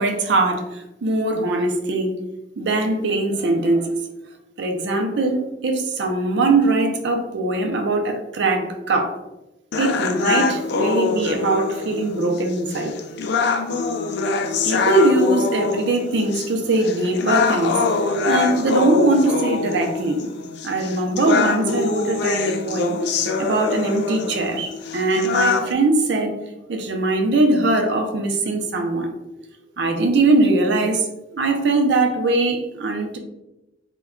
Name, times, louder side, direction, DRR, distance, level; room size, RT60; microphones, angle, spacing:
voice 1, 0.0-2.2 2.6-4.1 4.6-9.2 9.8-12.9 13.6-13.8 14.6-20.2 20.6-23.0 23.4-26.3 26.7-29.1 29.8-31.1 31.3-33.2, right 2 dB, 65° right, 3 dB, 0.5 m, -21 dB
sound 1, 9.7-25.7, left 4 dB, 60° left, 0.3 m, -24 dB
2.2 x 2.2 x 3.6 m, 0.94 s
head